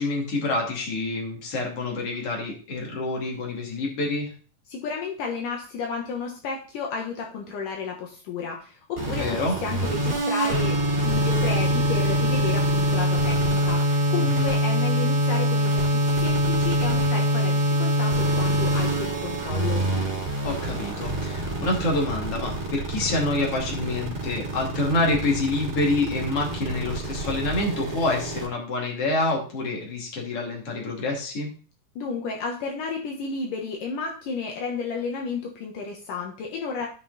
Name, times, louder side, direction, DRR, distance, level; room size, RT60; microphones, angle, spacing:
voice 1, 0.0-4.3 9.1-9.6 14.2-14.5 20.4-31.5, left 2 dB, 45° left, -1 dB, 3.6 m, -27 dB
voice 2, 4.7-19.8 32.0-36.9, left 5 dB, 75° left, 0 dB, 2.9 m, -32 dB
sound 1, 9.0-28.5, equal, 30° right, 3.7 m, -24 dB
16.0 x 5.5 x 4.2 m, 0.40 s
omnidirectional pair, 3.9 m